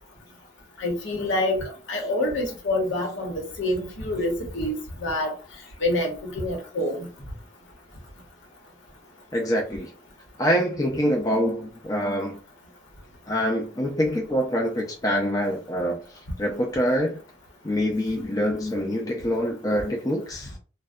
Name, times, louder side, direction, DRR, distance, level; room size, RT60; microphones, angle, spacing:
voice 1, 0.8-5.3 5.8-7.1, left 1 dB, 85° left, 0.9 m, -27 dB
voice 2, 9.3-9.9 10.4-12.4 13.3-16.0 16.4-17.2 17.6-20.5, equal, 20° left, 0.4 m, -25 dB
2.6 x 2.1 x 2.3 m
head